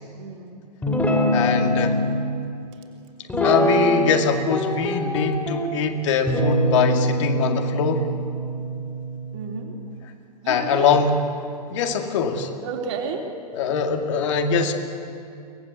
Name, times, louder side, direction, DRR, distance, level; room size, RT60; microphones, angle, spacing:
voice 1, 0.2-0.7 9.3-9.7 10.4-11.0 12.6-13.3, right 5 dB, 45° right, 2 dB, 3.3 m, -31 dB
Guitar, 0.8-2.0 3.3-4.2 4.5-5.7 6.3-9.7, equal, 10° left, 3.2 m, -23 dB
voice 2, 1.3-2.0 3.4-8.1 10.5-11.2 11.7-12.5 13.5-14.7, left 5 dB, 45° left, 5 dB, 2.1 m, -22 dB
23.5 x 18.5 x 8.1 m, 2.5 s
figure-of-eight pair, 105°, 21 cm